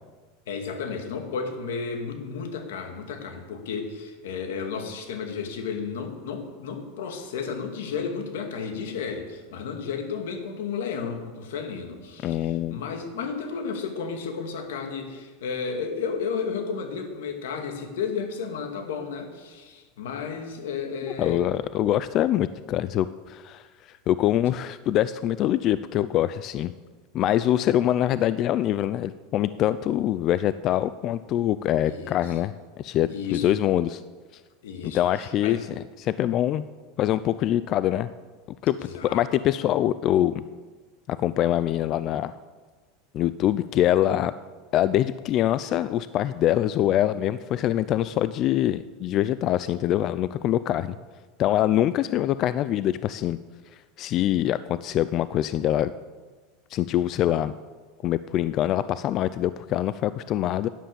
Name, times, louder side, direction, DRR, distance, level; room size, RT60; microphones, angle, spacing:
voice 1, 0.5-21.4 31.9-32.3 33.1-33.5 34.6-35.6 38.8-39.2, left 5 dB, 90° left, 5 dB, 2.1 m, -33 dB
voice 2, 12.2-12.8 21.2-23.6 24.1-26.7 27.1-34.0 34.8-36.6 37.0-38.1 38.6-38.8 39.0-40.4 41.1-42.4 43.1-44.3 44.7-50.9 51.4-53.4 54.0-55.9 56.7-57.5 58.0-60.7, left 12 dB, 35° left, 14 dB, 0.3 m, -24 dB
11.5 x 10.0 x 6.9 m, 1.4 s
supercardioid pair, 155°, 0 cm